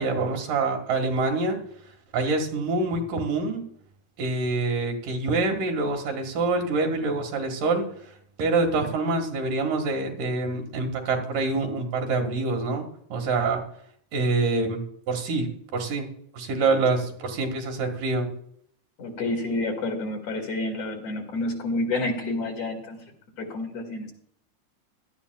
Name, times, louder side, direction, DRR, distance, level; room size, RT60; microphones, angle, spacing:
voice 1, 0.0-1.6 2.1-3.6 4.2-7.9 8.4-12.8 13.1-13.6 14.1-16.1 16.3-18.3, right 3 dB, 85° right, 3 dB, 3.5 m, -26 dB
voice 2, 19.0-23.0 23.4-24.1, left 2 dB, 55° left, 2 dB, 3.2 m, -29 dB
17.5 x 12.5 x 2.3 m, 0.65 s
omnidirectional pair, 3.7 m